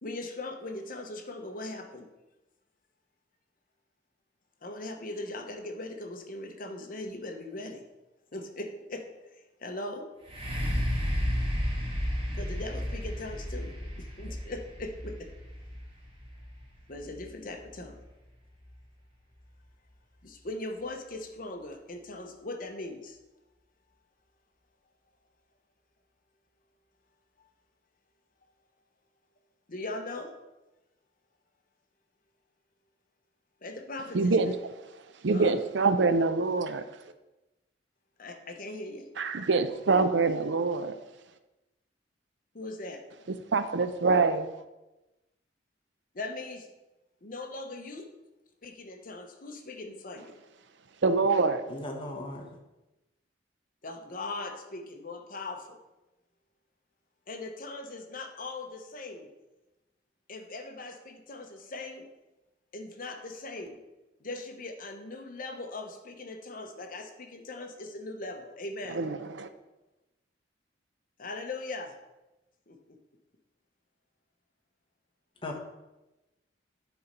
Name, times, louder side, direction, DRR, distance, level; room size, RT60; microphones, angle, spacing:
voice 1, 0.0-2.1 4.6-7.8 8.3-9.1 9.3-10.1 12.3-15.3 16.9-18.0 20.2-23.2 29.7-30.3 33.6-34.5 35.3-35.5 38.2-39.1 42.5-43.0 46.1-46.7 47.2-48.1 48.6-50.3 53.8-55.8 57.3-59.3 60.3-62.0 62.7-63.8 64.2-69.0 71.2-71.9 72.7-72.8, left 2 dB, 50° left, 1.0 m, -40 dB
sound 1, 10.2-18.0 18.6-18.7, equal, 30° right, 1.9 m, -33 dB
voice 2, 34.1-34.5 35.2-36.8 39.2-41.0 43.5-44.5 51.0-51.6 68.9-69.5, right 4 dB, 70° right, 0.5 m, -25 dB
voice 3, 51.7-52.5 75.4-75.6, left 1 dB, 30° left, 1.2 m, -37 dB
9.3 x 4.2 x 5.3 m
head